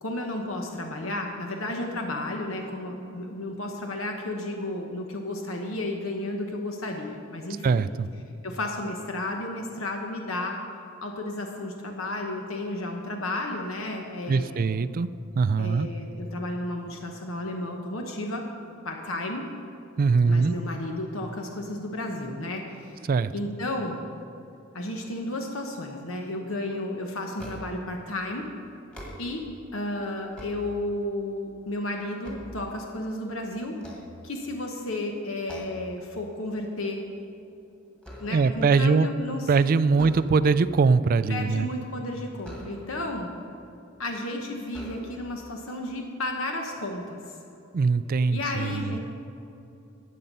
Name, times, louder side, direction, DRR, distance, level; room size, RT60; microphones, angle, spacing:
voice 1, 0.0-7.8 8.4-10.6 11.0-14.7 15.6-18.4 18.8-19.5 20.3-24.0 24.7-28.5 29.2-29.4 29.7-33.8 34.2-37.0 38.2-39.5 40.0-40.1 41.3-43.3 44.0-47.3 48.3-49.0, left 1 dB, 75° left, 2 dB, 1.0 m, -33 dB
voice 2, 7.6-8.1 14.3-15.1 15.4-15.9 20.0-20.5 23.1-23.3 38.3-39.1 39.5-41.7 47.7-48.8, right 4 dB, 45° right, 15 dB, 0.3 m, -22 dB
sound 1, 27.4-27.9 28.8-29.6 30.1-31.2 31.7-33.2 33.7-34.7 35.5-36.0 36.4-36.6 37.0-38.7 39.9-40.7 42.4-43.2 44.0-44.1 44.7-45.5, equal, 5° left, 1.7 m, -44 dB
13.5 x 8.5 x 5.4 m, 2.8 s
head